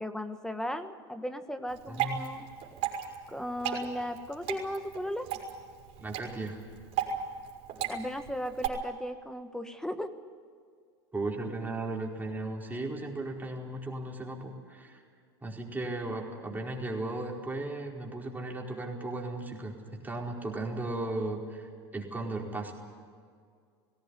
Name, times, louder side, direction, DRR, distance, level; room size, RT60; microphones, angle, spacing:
voice 1, 0.0-2.5 3.3-5.2 7.8-10.1, equal, 5° left, 9 dB, 1.5 m, -36 dB
Water / Drip, 1.7-8.7, right 9 dB, 55° right, 5.2 m, -36 dB
voice 2, 1.9-2.2 6.0-6.6 11.1-15.0 15.4-22.7, right 2 dB, 15° right, -1 dB, 4.8 m, -36 dB
19.5 x 17.0 x 9.8 m, 2.1 s
hypercardioid pair, 95°, 14 cm